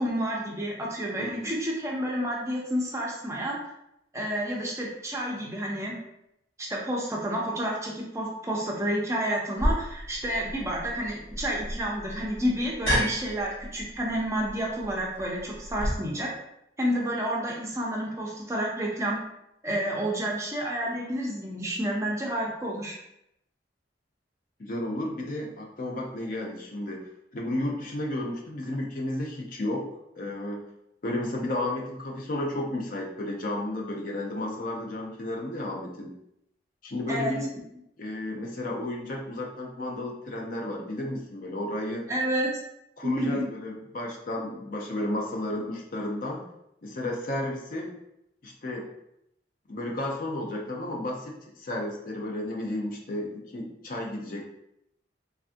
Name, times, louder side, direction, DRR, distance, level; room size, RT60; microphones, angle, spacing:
voice 1, 0.0-3.6 4.1-5.9 6.6-16.3 16.8-19.2 19.6-23.0 37.1-37.3 42.1-42.5 43.0-43.4, equal, 15° right, -2 dB, 0.5 m, -30 dB
voice 2, 1.2-1.5 24.6-27.1 27.3-29.9 30.2-30.6 31.0-36.1 36.8-37.5 38.0-42.1 43.0-46.4 46.8-47.9 48.4-48.9 49.7-54.4, left 1 dB, 45° left, -1 dB, 0.5 m, -32 dB
sound 1, 9.6-15.9, equal, 80° left, 1.3 m, -32 dB
3.3 x 2.4 x 2.5 m, 0.80 s
head